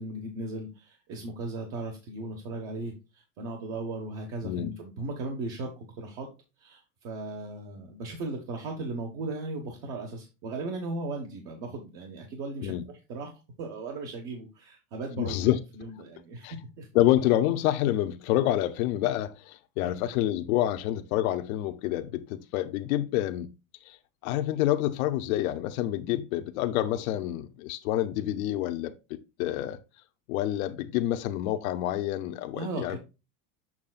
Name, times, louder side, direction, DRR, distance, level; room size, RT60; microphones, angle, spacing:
voice 1, 0.0-6.3 6.6-13.3 13.6-16.9 19.8-19.9 32.5-33.0, right 2 dB, 55° right, 1.5 m, -37 dB
voice 2, 15.2-15.6 16.4-16.5 16.9-23.5 23.8-24.0 24.2-28.9 29.4-29.8 30.3-33.0, left 13 dB, 85° left, 0.8 m, -27 dB
7.3 x 6.1 x 2.4 m
supercardioid pair, 165°, 41 cm